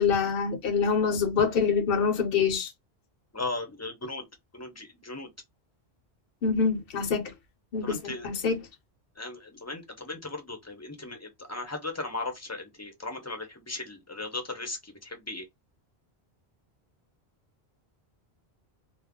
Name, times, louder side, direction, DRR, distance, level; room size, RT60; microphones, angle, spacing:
voice 1, 0.0-2.7 6.4-7.2 7.7-8.6, left 6 dB, 65° left, 0.9 m, -25 dB
voice 2, 3.3-4.2 4.5-5.3 7.8-8.3 9.2-15.5, left 2 dB, 20° left, 0.6 m, -37 dB
2.4 x 2.0 x 3.4 m
omnidirectional pair, 1.1 m